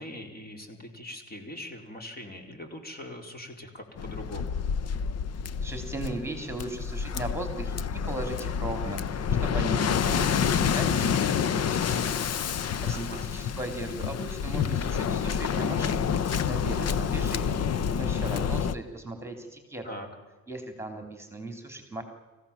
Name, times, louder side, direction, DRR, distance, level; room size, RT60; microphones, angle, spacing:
voice 1, 0.0-4.6 12.9-13.3 19.8-20.1, left 1 dB, 30° left, 4 dB, 4.4 m, -41 dB
Waves surf, 4.0-18.8, left 7 dB, 55° left, 1.0 m, -28 dB
voice 2, 5.6-12.3 12.8-16.1 16.5-17.6 17.9-19.8 20.5-22.0, right 2 dB, 10° right, 5 dB, 3.4 m, -37 dB
27.0 x 15.5 x 7.4 m, 1.3 s
cardioid pair, 90°, 30 cm